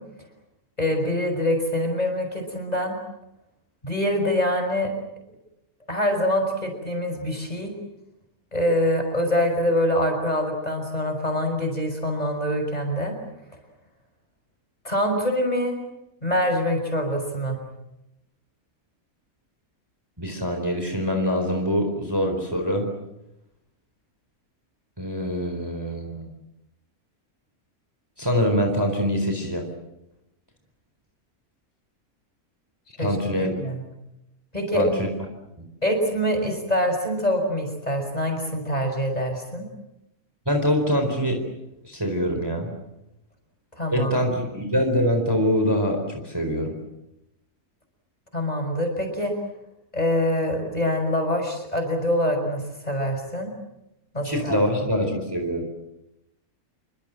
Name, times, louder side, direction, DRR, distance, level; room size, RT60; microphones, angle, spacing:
voice 1, 0.8-2.9 3.8-4.9 5.9-7.7 8.5-13.1 14.8-15.8 16.2-17.6 33.0-33.2 33.6-33.8 34.5-34.9 35.8-39.7 43.8-44.1 48.3-49.3 49.9-53.5 54.1-54.6, equal, 25° left, 4 dB, 6.0 m, -24 dB
voice 2, 20.2-22.9 25.0-26.3 28.2-29.7 33.0-33.6 34.7-35.1 40.5-41.4 41.8-42.7 43.9-46.7 54.2-55.6, equal, 15° right, 4 dB, 4.2 m, -24 dB
28.0 x 24.5 x 7.6 m, 0.90 s
omnidirectional pair, 1.6 m